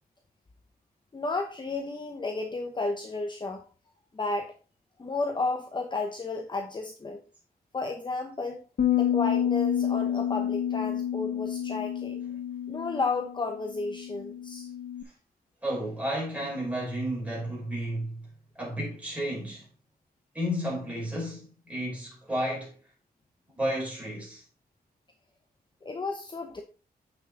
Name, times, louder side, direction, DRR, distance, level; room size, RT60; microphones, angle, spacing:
voice 1, 1.1-3.6 4.1-4.5 5.0-7.2 7.7-8.6 8.9-12.2 12.7-14.7 25.8-26.6, left 3 dB, 30° left, 0.9 m, -32 dB
sound 1, 8.8-15.0, left 9 dB, 65° left, 0.9 m, -29 dB
voice 2, 15.6-18.2 18.5-19.6 20.3-22.7 23.6-24.4, equal, 10° right, 5.0 m, -32 dB
8.0 x 6.1 x 3.8 m
wide cardioid pair, 125°, 16 cm